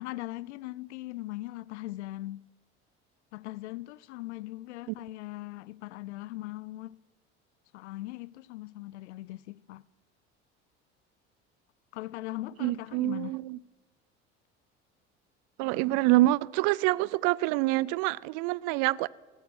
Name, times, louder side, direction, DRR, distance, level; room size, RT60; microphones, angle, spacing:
voice 1, 0.0-2.5 3.3-7.0 7.7-9.8 11.9-13.4, left 17 dB, 80° left, 0.5 m, -40 dB
voice 2, 12.6-13.6 15.6-19.1, right 18 dB, 65° right, 0.5 m, -26 dB
16.5 x 13.5 x 6.1 m
hypercardioid pair, 70°, 34 cm